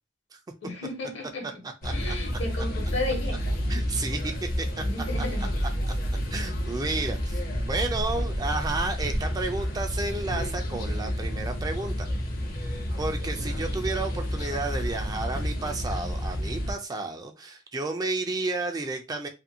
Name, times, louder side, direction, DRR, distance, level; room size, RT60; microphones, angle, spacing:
voice 1, 0.6-1.4 1.9-3.4 4.9-5.5, left 2 dB, 65° left, 1.0 m, -33 dB
voice 2, 1.4-2.2 3.7-4.8 5.2-5.5 6.3-12.1 13.0-19.3, right 3 dB, 20° right, 0.4 m, -32 dB
sound 1, 1.8-16.7, equal, 50° left, 0.7 m, -30 dB
2.5 x 2.5 x 2.7 m
head